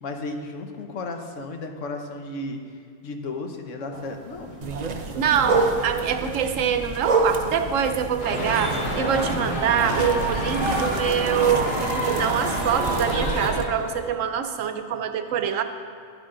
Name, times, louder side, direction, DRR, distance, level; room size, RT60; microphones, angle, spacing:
voice 1, 0.0-5.6 13.9-14.0, left 2 dB, 70° left, 4 dB, 1.3 m, -35 dB
sound 1, 3.9-14.1, right 3 dB, 30° right, 0.9 m, -31 dB
sound 2, 4.6-13.6, right 4 dB, 45° right, 0.5 m, -33 dB
voice 2, 5.2-15.6, right 8 dB, 75° right, 8 dB, 1.0 m, -25 dB
sound 3, 8.2-13.5, equal, 45° left, 2.6 m, -27 dB
11.0 x 10.0 x 3.8 m, 2.3 s
omnidirectional pair, 1.4 m